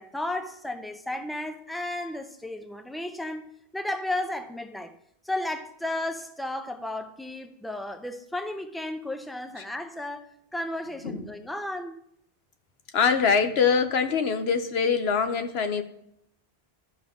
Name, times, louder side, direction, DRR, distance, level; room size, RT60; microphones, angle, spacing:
voice 1, 0.0-3.5 3.7-4.9 5.2-10.3 10.5-11.9, left 1 dB, ahead, 0.5 m, -33 dB
voice 2, 12.9-15.8, left 6 dB, 75° left, 1.1 m, -23 dB
13.0 x 6.2 x 3.5 m
omnidirectional pair, 1.1 m